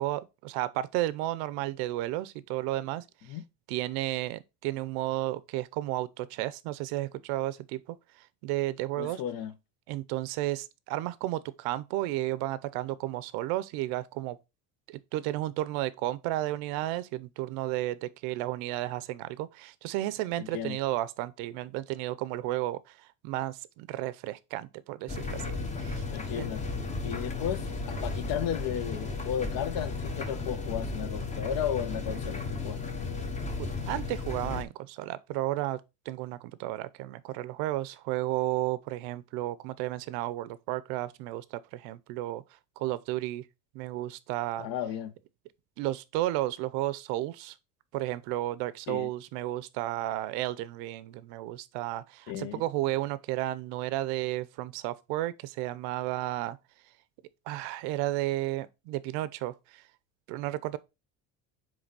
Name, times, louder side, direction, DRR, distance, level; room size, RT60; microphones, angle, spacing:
voice 1, 0.0-3.0 3.7-7.8 8.4-9.2 9.9-14.4 14.9-22.8 23.2-25.5 25.8-26.0 26.3-26.5 33.6-35.8 36.1-42.4 42.8-43.4 43.7-44.7 45.8-47.5 47.9-56.6 57.5-59.5 60.3-60.8, right 16 dB, 85° right, 0.7 m, -33 dB
voice 2, 9.0-9.5 20.4-20.8 26.1-26.6 27.0-32.8 44.6-45.1 48.9-49.1 52.3-52.6, left 9 dB, 65° left, 0.9 m, -34 dB
sound 1, 25.1-34.6, left 3 dB, 20° left, 0.8 m, -34 dB
7.9 x 3.3 x 4.0 m
cardioid pair, 155°, 38 cm